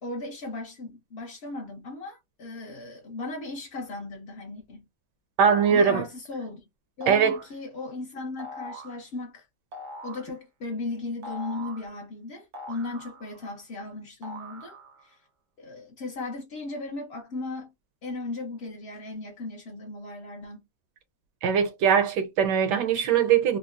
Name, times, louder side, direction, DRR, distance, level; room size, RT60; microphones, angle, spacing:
voice 1, 0.0-4.9 5.7-6.7 7.0-9.5 10.0-15.2 15.6-17.7 18.0-20.6, left 2 dB, 60° left, 0.6 m, -37 dB
sound 1, 5.4-6.0 7.0-7.6 8.4-9.0 9.7-10.3 11.2-11.9 12.5-13.5 14.2-15.1, equal, 60° right, 0.7 m, -42 dB
voice 2, 5.4-6.0 7.1-7.4 21.4-23.6, right 7 dB, 75° right, 1.1 m, -21 dB
3.6 x 2.0 x 2.4 m
omnidirectional pair, 1.9 m